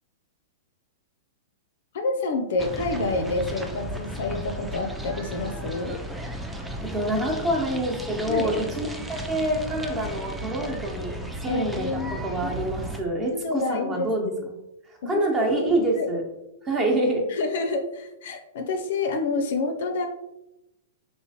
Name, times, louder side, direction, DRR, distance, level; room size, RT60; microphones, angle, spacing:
voice 1, 1.9-6.0 8.3-8.5 11.5-12.5 13.3-14.5 15.0-15.6 16.0-16.1 17.3-20.1, left 3 dB, 65° left, 5 dB, 0.4 m, -28 dB
sound 1, 2.6-13.0, right 1 dB, 5° right, 0.4 m, -35 dB
voice 2, 6.8-11.2 11.4-14.5 14.9-16.2 16.6-17.3, right 1 dB, 25° right, 0 dB, 0.9 m, -26 dB
3.2 x 2.9 x 2.8 m, 0.93 s
hypercardioid pair, 110°, 0 cm